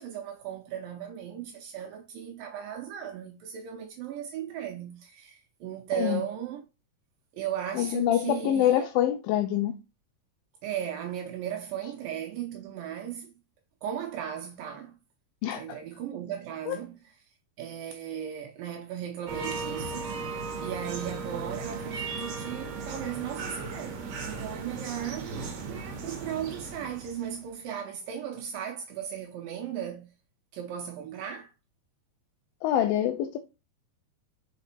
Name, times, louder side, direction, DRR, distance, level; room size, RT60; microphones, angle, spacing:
voice 1, 0.0-6.6 7.3-8.9 10.6-13.3 13.8-15.0 15.6-17.1 17.6-20.1 20.6-25.4 25.7-30.1 30.5-31.5, right 9 dB, 75° right, 2.4 m, -36 dB
voice 2, 7.8-9.8 15.4-15.8 16.7-16.8 32.6-33.4, left 11 dB, 80° left, 2.3 m, -25 dB
sound 1, 19.3-27.6, right 4 dB, 60° right, 2.1 m, -36 dB
5.8 x 4.1 x 4.4 m
omnidirectional pair, 4.2 m